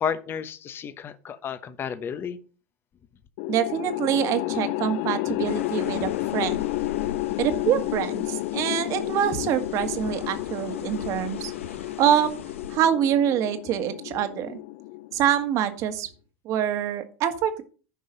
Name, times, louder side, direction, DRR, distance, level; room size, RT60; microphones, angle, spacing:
voice 1, 0.0-2.4, left 7 dB, 30° left, 13 dB, 0.9 m, -31 dB
sound 1, 3.4-15.7, left 18 dB, 55° left, 0.4 m, -31 dB
voice 2, 3.5-6.6 7.4-11.5 12.0-12.3 12.7-14.6 15.1-16.1 16.4-17.6, right 10 dB, 50° right, 9 dB, 1.6 m, -25 dB
sound 2, 5.5-12.8, left 6 dB, 80° left, 1.0 m, -41 dB
10.5 x 5.5 x 5.3 m, 0.37 s
hypercardioid pair, 90°, 7 cm